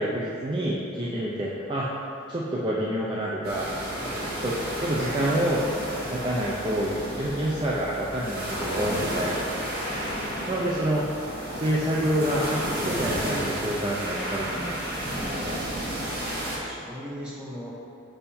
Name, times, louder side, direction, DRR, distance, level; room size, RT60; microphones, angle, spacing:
voice 1, 0.0-2.0 2.3-3.7 4.4-4.5 4.8-5.6 6.1-9.3 10.5-11.0 11.5-15.6, right 1 dB, 25° right, -5 dB, 0.5 m, -28 dB
sound 1, 3.4-16.6, right 1 dB, 45° right, 1.3 m, -32 dB
sound 2, 4.8-11.6, equal, 65° left, 0.8 m, -45 dB
voice 2, 9.5-10.4 16.6-17.7, equal, 5° right, -6 dB, 1.0 m, -41 dB
5.7 x 5.6 x 4.2 m, 2.6 s
head